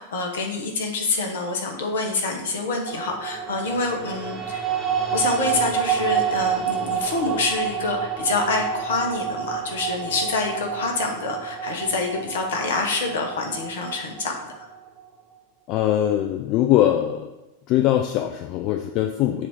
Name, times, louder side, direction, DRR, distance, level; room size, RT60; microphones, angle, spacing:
voice 1, 0.0-4.6 5.1-14.5, left 3 dB, 60° left, 2 dB, 1.0 m, -26 dB
sound 1, 2.9-15.1, right 8 dB, 15° right, 1.1 m, -28 dB
voice 2, 15.7-17.3 17.7-19.5, left 12 dB, 40° left, 5 dB, 0.3 m, -21 dB
7.2 x 2.8 x 4.9 m, 1.0 s
figure-of-eight pair, 90°, 0 cm